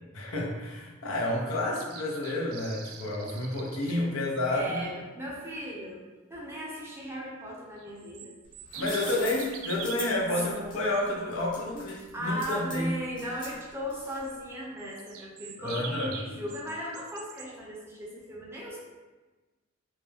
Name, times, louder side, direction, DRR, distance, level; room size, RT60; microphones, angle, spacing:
voice 1, 0.1-4.8 8.7-12.9 15.6-16.1, left 1 dB, 85° left, -3 dB, 0.6 m, -30 dB
sound 1, 1.6-3.9 7.8-10.2 14.8-17.5, right 6 dB, 80° right, 0.3 m, -43 dB
voice 2, 4.5-6.0 6.3-8.3 8.8-9.0 12.1-18.8, equal, 10° right, -5 dB, 0.4 m, -37 dB
sound 2, 8.4-14.4, left 2 dB, 40° left, 0.7 m, -42 dB
2.2 x 2.2 x 3.2 m, 1.2 s
head